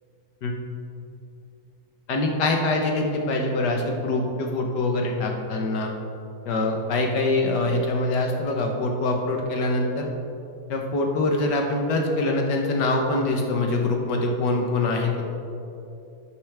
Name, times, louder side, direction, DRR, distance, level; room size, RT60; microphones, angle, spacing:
voice 1, 2.1-5.9 6.4-10.1 10.7-15.2, left 2 dB, 60° left, 2 dB, 1.6 m, -24 dB
11.5 x 8.8 x 3.5 m, 2.7 s
omnidirectional pair, 2.1 m